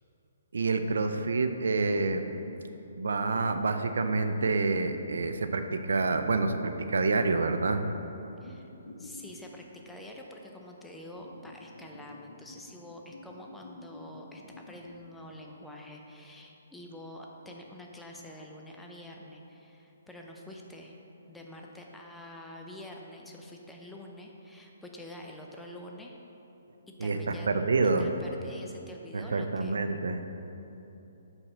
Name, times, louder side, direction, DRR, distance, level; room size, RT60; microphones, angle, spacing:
voice 1, 0.5-2.3 3.0-7.8 27.0-28.1 29.1-30.2, right 3 dB, 80° right, 8 dB, 0.4 m, -27 dB
sound 1, 1.7-2.7 3.3-5.4 6.3-7.4 8.3-10.1 11.1-15.1, left 2 dB, 90° left, 0.6 m, -49 dB
voice 2, 9.0-21.0 21.3-26.2 26.9-27.5 28.0-29.8, left 1 dB, 5° left, 0 dB, 0.5 m, -46 dB
5.4 x 4.2 x 5.9 m, 3.0 s
hypercardioid pair, 155°, 0 cm